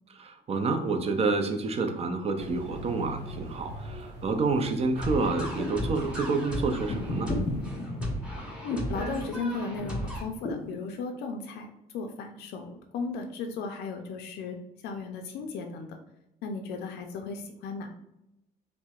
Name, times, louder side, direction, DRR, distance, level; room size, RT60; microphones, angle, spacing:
voice 1, 0.1-7.3, right 3 dB, 35° right, 6 dB, 0.5 m, -28 dB
sound 1, 2.3-7.7, right 1 dB, 80° right, 0.9 m, -43 dB
sound 2, 4.9-10.2, equal, 5° right, 1.3 m, -34 dB
sound 3, 5.4-5.9 6.9-7.6 8.7-9.0 10.4-10.8, left 2 dB, 35° left, 0.7 m, -33 dB
voice 2, 8.6-14.6 14.8-16.0 16.4-17.9, left 4 dB, 75° left, 4 dB, 0.4 m, -35 dB
4.4 x 2.1 x 2.3 m, 0.88 s
cardioid pair, 110°, 17 cm